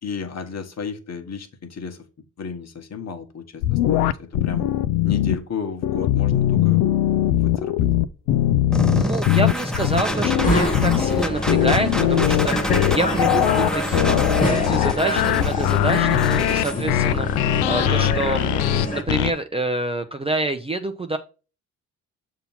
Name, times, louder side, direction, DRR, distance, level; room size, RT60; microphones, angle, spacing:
voice 1, 0.0-2.0 2.4-4.7 5.0-6.8 7.1-7.9 16.7-17.1, left 5 dB, 40° left, 6 dB, 1.2 m, -33 dB
sound 1, 3.6-5.4 5.8-19.3, left 13 dB, 70° left, 0.5 m, -20 dB
sound 2, 8.7-16.7, equal, ahead, 0.9 m, -29 dB
voice 2, 8.9-17.3 17.7-21.2, right 2 dB, 15° right, 6 dB, 0.5 m, -27 dB
sound 3, 9.9-19.0, left 1 dB, 20° left, 1.3 m, -26 dB
6.7 x 2.9 x 5.6 m, 0.34 s
supercardioid pair, 65°, 40 cm